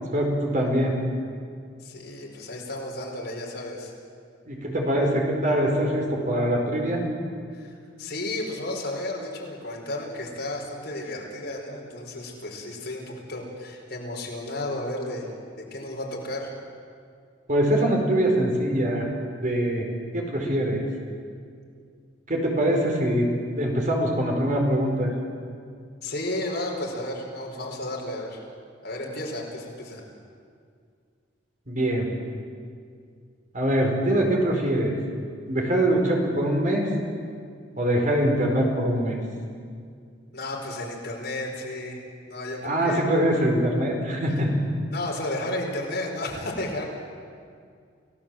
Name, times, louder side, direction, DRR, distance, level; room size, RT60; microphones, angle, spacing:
voice 1, 0.1-0.9 4.5-7.0 17.5-19.1 19.4-19.9 20.1-20.8 22.3-23.3 23.6-25.1 31.7-32.1 33.5-34.9 35.5-36.9 37.8-39.2 42.6-44.5, right 1 dB, 45° right, 1 dB, 4.7 m, -23 dB
voice 2, 1.8-3.9 7.5-7.7 8.0-15.3 15.6-16.5 26.0-28.4 28.8-30.0 40.3-43.3 44.9-46.8, left 1 dB, 60° left, -1 dB, 4.8 m, -33 dB
29.0 x 17.5 x 7.7 m, 2.2 s
head